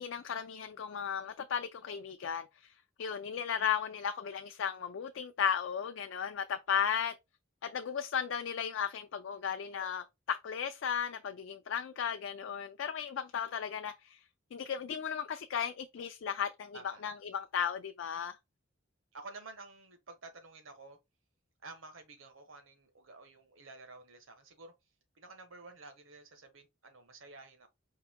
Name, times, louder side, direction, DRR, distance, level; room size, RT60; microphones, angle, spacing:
voice 1, 0.0-2.7 3.0-7.1 7.6-14.2 14.5-18.4, left 8 dB, 65° left, 0.4 m, -35 dB
voice 2, 19.1-21.0 21.6-24.7 25.1-27.7, right 3 dB, 80° right, 1.1 m, -51 dB
4.7 x 2.6 x 3.5 m
head